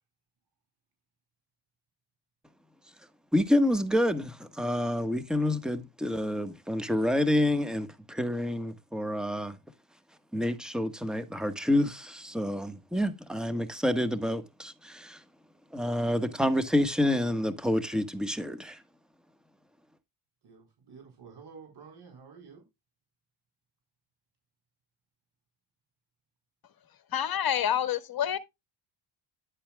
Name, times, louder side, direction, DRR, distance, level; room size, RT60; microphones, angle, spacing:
voice 1, 3.3-9.6 10.3-15.2 15.7-18.8, left 1 dB, ahead, 1.4 m, -28 dB
voice 2, 20.4-22.6, right 5 dB, 50° right, 4.3 m, -50 dB
voice 3, 27.1-28.4, left 10 dB, 45° left, 1.6 m, -27 dB
10.5 x 8.9 x 2.3 m
cardioid pair, 85°, 49 cm